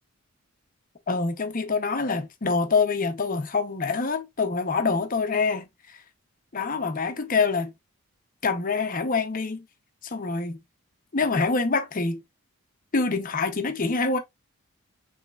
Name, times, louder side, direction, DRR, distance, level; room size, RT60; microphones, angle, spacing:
voice 1, 1.1-6.0 6.5-7.7 8.4-9.6 10.0-10.6 11.1-12.2 12.9-14.2, left 4 dB, 35° left, 0.7 m, -25 dB
5.7 x 3.2 x 2.3 m
head